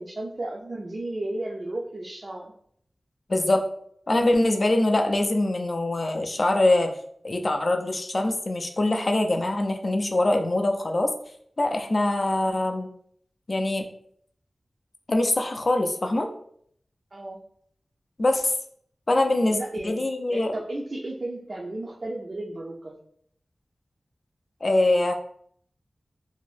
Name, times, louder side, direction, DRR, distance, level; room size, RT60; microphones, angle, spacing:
voice 1, 0.0-2.5 17.1-17.4 19.4-20.0 20.3-23.0, right 1 dB, 50° right, -2 dB, 0.4 m, -34 dB
voice 2, 3.3-3.7 4.1-6.9 7.2-11.1 11.6-12.9 13.5-13.9 15.1-16.3 18.2-18.5 19.1-19.6 19.8-20.5 24.6-25.1, left 2 dB, 50° left, 4 dB, 0.3 m, -23 dB
2.6 x 2.0 x 3.2 m, 0.66 s
wide cardioid pair, 75°, 0 cm